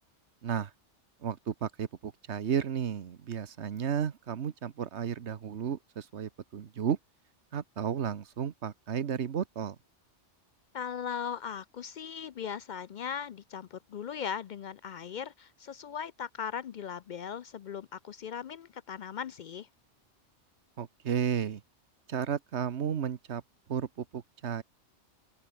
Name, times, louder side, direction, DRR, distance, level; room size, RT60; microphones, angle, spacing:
voice 1, 1.2-7.0 7.5-9.8 20.8-21.6 22.1-23.4 23.7-24.6, right 8 dB, 70° right, 1.3 m, -33 dB
voice 2, 10.7-19.7, left 7 dB, 60° left, 0.5 m, -38 dB
open air
omnidirectional pair, 1.2 m